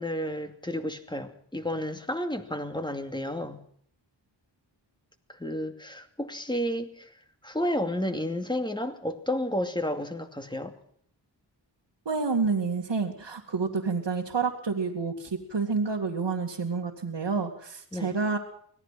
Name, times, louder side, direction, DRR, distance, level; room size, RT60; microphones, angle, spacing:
voice 1, 0.0-3.6 5.3-7.1 7.4-10.7 17.9-18.2, left 1 dB, 10° left, 2.6 m, -31 dB
voice 2, 12.1-18.4, right 4 dB, 70° right, 2.4 m, -29 dB
24.5 x 18.0 x 5.9 m
wide cardioid pair, 75°, 45 cm